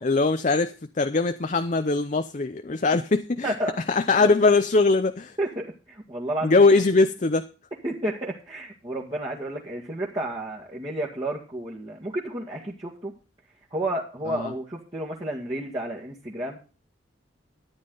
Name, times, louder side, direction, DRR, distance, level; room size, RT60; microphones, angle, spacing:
voice 1, 0.0-3.5 3.9-5.4 6.4-7.5 14.3-14.5, left 3 dB, 40° left, 9 dB, 0.6 m, -21 dB
voice 2, 3.4-3.8 4.2-4.5 5.4-6.6 7.8-13.1 13.7-16.6, right 1 dB, 30° right, -5 dB, 1.9 m, -31 dB
13.0 x 9.8 x 3.9 m, 0.35 s
head